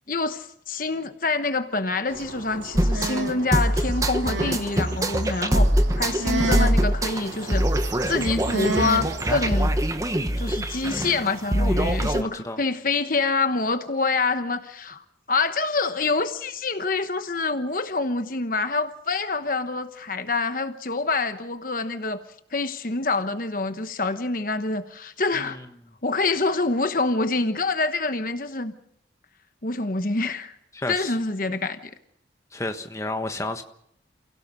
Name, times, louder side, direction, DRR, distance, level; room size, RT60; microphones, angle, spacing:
voice 1, 0.1-5.7 6.0-7.6 8.1-9.7 10.4-22.2 22.5-25.6 26.0-28.7 29.6-30.5 30.9-31.9, left 3 dB, 50° left, 1.1 m, -26 dB
sound 1, 2.1-9.7, right 2 dB, 85° right, 2.5 m, -32 dB
sound 2, 2.8-12.2, right 1 dB, 20° right, 1.1 m, -24 dB
voice 2, 11.7-12.6 25.3-25.7 30.7-31.2 32.5-33.6, left 2 dB, 15° left, 1.3 m, -32 dB
29.0 x 16.5 x 6.3 m
head